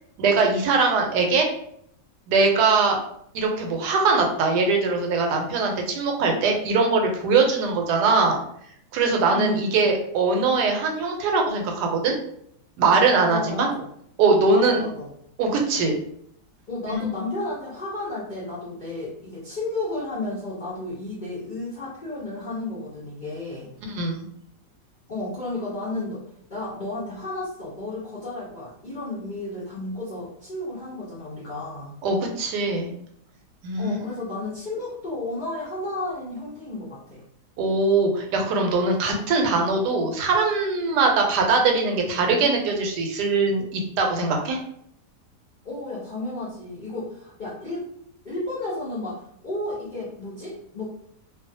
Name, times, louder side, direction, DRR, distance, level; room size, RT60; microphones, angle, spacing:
voice 1, 0.2-1.5 2.3-3.0 3.3-8.4 8.9-12.1 12.8-13.7 14.2-14.8 15.4-16.0 16.9-17.1 23.8-24.2 32.0-32.9 33.6-34.0 37.6-44.6, right 4 dB, 80° right, 2 dB, 1.2 m, -21 dB
voice 2, 9.3-9.8 13.3-13.9 14.5-15.1 16.7-23.7 25.1-26.2 26.5-32.0 33.8-37.2 45.6-47.9 48.2-50.9, left 2 dB, 55° left, -9 dB, 0.5 m, -32 dB
2.6 x 2.3 x 2.6 m, 0.69 s
omnidirectional pair, 1.7 m